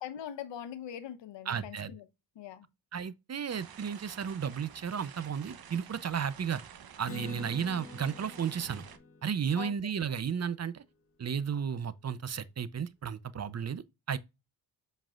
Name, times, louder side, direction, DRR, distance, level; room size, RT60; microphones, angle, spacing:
voice 1, 0.0-2.1 2.3-2.7 9.5-9.9, left 9 dB, 85° left, 1.0 m, -42 dB
voice 2, 1.5-1.9 2.9-6.6 7.0-8.9 9.2-10.8 11.2-13.8 14.1-14.2, right 7 dB, 40° right, 0.6 m, -33 dB
sound 1, 3.5-9.0, right 8 dB, 60° right, 1.0 m, -50 dB
Acoustic guitar, 7.0-10.7, left 3 dB, 30° left, 0.9 m, -47 dB
7.5 x 5.4 x 2.4 m
cardioid pair, 90°, 42 cm